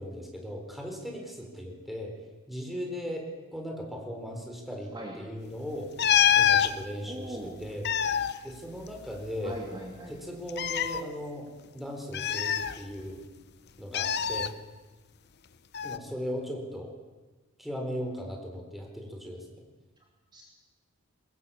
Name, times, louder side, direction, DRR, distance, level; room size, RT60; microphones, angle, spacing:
voice 1, 0.0-2.1 2.5-3.2 3.5-5.9 6.3-7.8 8.4-9.6 10.1-13.2 13.8-14.5 15.8-16.9 17.6-19.4, equal, ahead, 1 dB, 4.2 m, -37 dB
voice 2, 4.9-5.2 7.0-7.8 9.4-10.2 20.3-20.4, right 1 dB, 20° right, -1 dB, 3.1 m, -40 dB
sound 1, 6.0-6.7 7.6-9.3 9.6-9.7 10.5-11.0 12.1-13.2 13.9-14.5 15.7-16.0, left 9 dB, 50° left, 0.8 m, -25 dB
23.0 x 21.0 x 8.6 m, 1.3 s
head